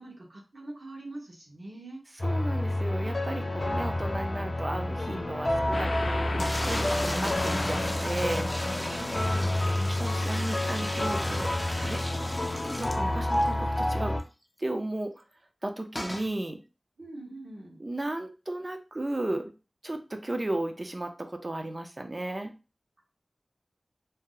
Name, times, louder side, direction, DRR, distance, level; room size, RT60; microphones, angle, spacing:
voice 1, 0.0-2.0 8.9-9.7 17.0-17.8, right 2 dB, 70° right, -2 dB, 1.1 m, -43 dB
sound 1, 2.2-14.2, left 1 dB, 50° left, 0.8 m, -29 dB
voice 2, 2.2-8.5 9.7-11.5 11.8-12.0 12.8-14.2 14.6-15.2 15.6-16.6 17.8-19.5 19.8-22.5, right 1 dB, 40° right, 5 dB, 0.5 m, -34 dB
sound 2, 5.7-12.5, left 2 dB, 85° left, 0.4 m, -38 dB
sound 3, 6.4-13.5 13.9-14.0 14.2-14.3 15.9-16.3, equal, 15° left, 0.4 m, -35 dB
2.7 x 2.1 x 3.8 m, 0.32 s
wide cardioid pair, 55°, 0 cm